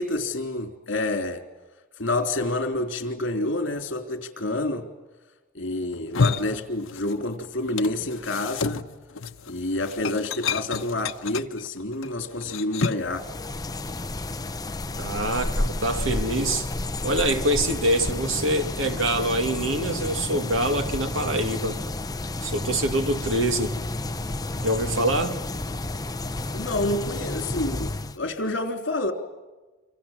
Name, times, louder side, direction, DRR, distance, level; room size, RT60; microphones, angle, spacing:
voice 1, 0.0-1.4 2.0-4.9 5.5-8.8 9.5-13.3 26.5-29.1, left 2 dB, 65° left, 3.5 m, -28 dB
sound 1, 5.9-7.3 7.6-13.2, left 5 dB, 85° left, 0.9 m, -30 dB
sound 2, 13.1-28.2, left 2 dB, 20° left, 0.8 m, -31 dB
voice 2, 15.0-16.7 17.0-21.8 22.4-23.8 24.6-25.4, right 1 dB, 75° right, 2.3 m, -25 dB
28.5 x 26.0 x 7.4 m
head